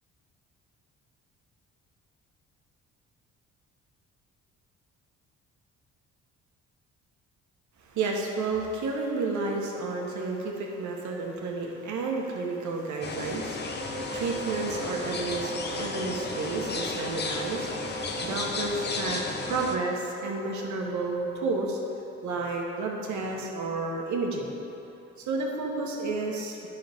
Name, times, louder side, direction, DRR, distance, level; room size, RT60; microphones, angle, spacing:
voice 1, 7.9-21.8 22.2-24.5 25.2-26.7, right 3 dB, 75° right, 0 dB, 1.3 m, -31 dB
sound 1, 13.0-19.8, left 3 dB, 35° left, 0.8 m, -34 dB
sound 2, 13.8-21.7, right 5 dB, 35° right, 0.6 m, -41 dB
10.5 x 5.5 x 3.5 m, 2.9 s
cardioid pair, 90°, 30 cm